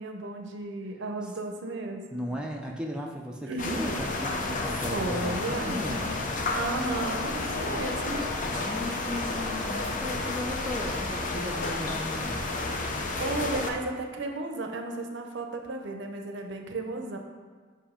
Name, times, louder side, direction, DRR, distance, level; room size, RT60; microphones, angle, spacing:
voice 1, 0.0-2.2 3.5-3.8 4.6-5.8 6.5-8.2 13.2-17.2, right 2 dB, 65° right, 4 dB, 0.6 m, -34 dB
voice 2, 2.1-6.2 8.5-12.5, left 1 dB, 5° right, -1 dB, 0.4 m, -36 dB
sound 1, 3.6-13.7, left 2 dB, 40° left, 0.6 m, -31 dB
7.4 x 2.7 x 5.0 m, 1.5 s
head